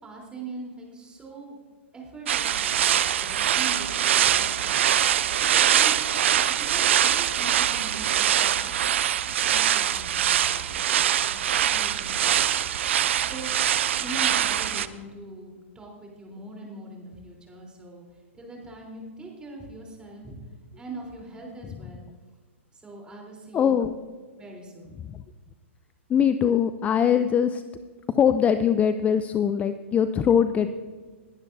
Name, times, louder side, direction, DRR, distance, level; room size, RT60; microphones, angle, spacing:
voice 1, 0.0-1.6 1.9-4.9 5.7-5.9 6.3-8.7 9.3-12.5 13.2-13.5 14.0-20.3 20.8-22.0 22.7-23.9 24.4-25.0, right 2 dB, 15° right, -2 dB, 3.6 m, -42 dB
sound 1, 2.3-14.9, right 10 dB, 65° right, 0.6 m, -23 dB
voice 2, 23.5-23.9 26.1-27.6 28.1-30.7, left 8 dB, 20° left, 11 dB, 0.4 m, -22 dB
20.0 x 11.0 x 2.7 m, 1.5 s
hypercardioid pair, 115°, 7 cm